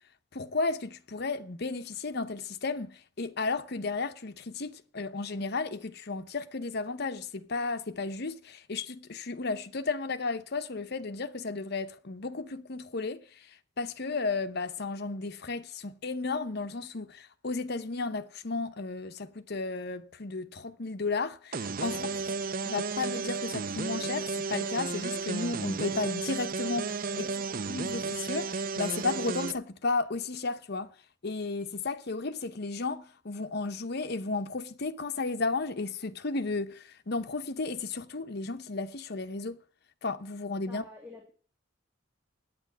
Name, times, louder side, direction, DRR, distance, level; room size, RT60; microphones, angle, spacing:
voice 1, 0.3-13.5 13.8-22.1 22.7-27.2 27.7-30.9 31.2-39.6 40.0-40.8, left 3 dB, 55° left, 0.8 m, -33 dB
sound 1, 21.5-29.5, right 4 dB, 45° right, 0.6 m, -33 dB
voice 2, 21.9-22.3 27.1-27.6 40.7-41.3, left 2 dB, 10° right, 2.1 m, -50 dB
9.2 x 8.9 x 7.4 m
head